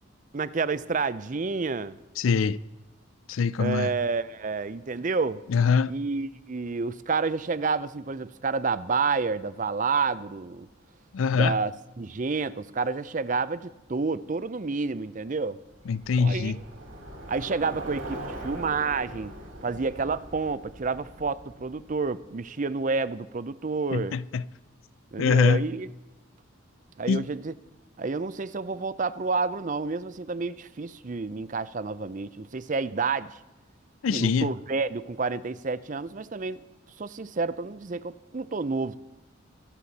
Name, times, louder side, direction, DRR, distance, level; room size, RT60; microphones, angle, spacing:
voice 1, 0.3-2.0 3.6-5.4 5.9-10.7 11.3-11.7 12.0-15.6 16.2-16.6 17.3-19.3 19.6-24.2 25.1-25.9 27.0-27.5 28.0-33.4 34.1-36.6 37.0-39.0, right 4 dB, 40° right, 0.5 m, -29 dB
voice 2, 2.2-2.6 3.3-3.9 5.5-5.9 11.1-11.6 15.9-16.6 23.9-24.4 25.2-25.7 27.1-27.3 34.0-34.5, left 5 dB, 80° left, 0.4 m, -23 dB
Bicycle, 15.7-22.2, right 1 dB, 85° right, 4.7 m, -41 dB
24.0 x 8.3 x 4.1 m
head